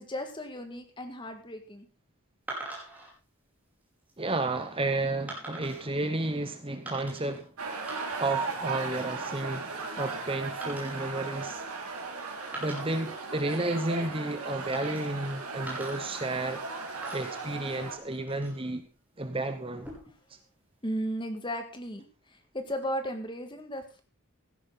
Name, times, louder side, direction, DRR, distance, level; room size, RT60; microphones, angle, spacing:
voice 1, 0.0-1.9 20.8-24.0, equal, 20° left, 6 dB, 1.9 m, -35 dB
sound 1, 2.5-3.1 3.8-4.2 5.3-5.9 6.9-7.4 7.7-8.4 8.7-9.2 10.6-12.1 12.4-13.7 14.7-15.3 15.7-16.7 17.0-18.7 19.7-20.3, right 2 dB, 5° right, 5.0 m, -44 dB
voice 2, 4.2-7.5 8.2-11.6 12.6-16.6 17.1-18.9 19.2-19.9, right 2 dB, 25° right, 9 dB, 0.9 m, -32 dB
sound 2, 7.6-18.0, right 4 dB, 85° right, 3.2 m, -36 dB
16.5 x 11.0 x 4.0 m, 0.34 s
head